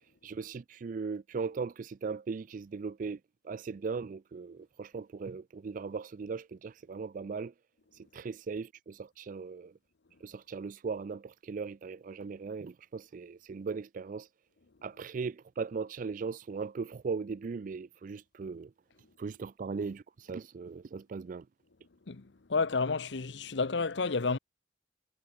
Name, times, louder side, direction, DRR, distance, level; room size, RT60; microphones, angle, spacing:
voice 1, 0.2-3.2 3.5-7.5 8.1-9.7 10.2-14.3 14.8-18.7 19.2-21.4, right 5 dB, 45° right, 0.4 m, -38 dB
voice 2, 22.5-24.4, left 4 dB, 80° left, 0.9 m, -30 dB
head